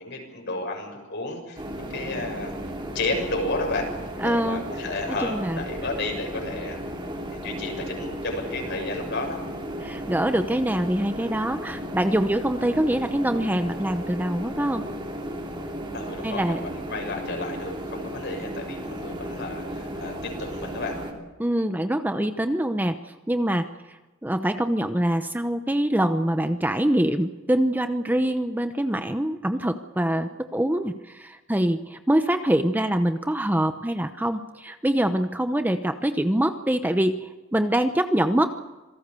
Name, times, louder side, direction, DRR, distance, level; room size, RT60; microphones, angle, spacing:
voice 1, 0.0-2.5 2.9-3.9 4.2-6.9 7.3-9.4 15.9-21.0, left 2 dB, 60° left, 2 dB, 6.9 m, -32 dB
sound 1, 1.5-21.1, equal, 25° right, 3.3 m, -35 dB
voice 2, 4.2-4.6 5.3-5.6 9.8-14.8 16.2-16.6 21.4-23.0 23.3-38.5, right 1 dB, 10° right, 8 dB, 0.8 m, -24 dB
26.5 x 18.5 x 6.9 m, 1.1 s
head